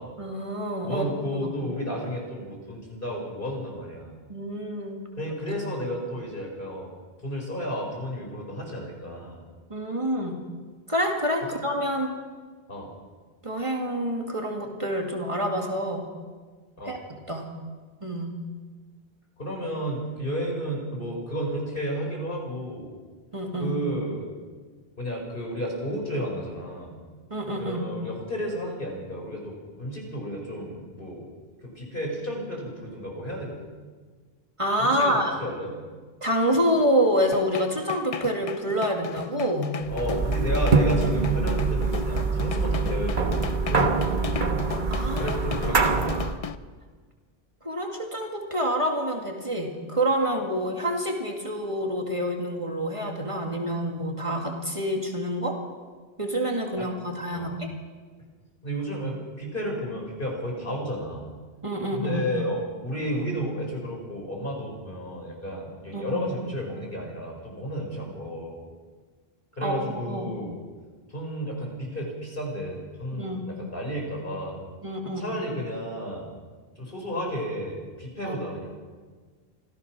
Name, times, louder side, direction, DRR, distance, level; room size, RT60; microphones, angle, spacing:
voice 1, 0.2-1.0 1.4-1.5 4.3-5.0 9.7-10.4 10.9-12.1 13.4-16.0 16.9-17.0 17.3-17.5 18.0-18.3 23.3-23.8 27.3-27.8 34.6-35.4 36.2-39.7 44.9-45.3 45.7-46.1 47.6-55.6 56.2-57.7 61.6-62.3 65.9-66.3 69.6-69.8 70.1-70.3 73.1-73.4 74.8-75.4 78.2-78.4, equal, 30° right, 1 dB, 2.4 m, -27 dB
voice 2, 0.8-4.2 5.2-6.9 7.2-9.4 11.4-11.6 12.7-12.9 16.8-16.9 19.4-22.9 23.6-24.3 25.0-27.0 27.6-31.3 31.6-33.7 34.8-35.8 39.9-43.4 43.7-44.2 45.2-46.2 56.8-56.9 57.3-57.5 58.6-61.3 61.9-68.6 69.5-70.6 71.1-74.6 75.2-76.3 76.8-78.7, equal, 60° left, 0 dB, 5.5 m, -32 dB
sound 1, 37.3-46.5, left 6 dB, 40° left, 0.7 m, -35 dB
sound 2, 39.9-46.4, right 4 dB, 50° right, 1.4 m, -24 dB
26.0 x 16.5 x 6.2 m, 1.5 s
omnidirectional pair, 1.0 m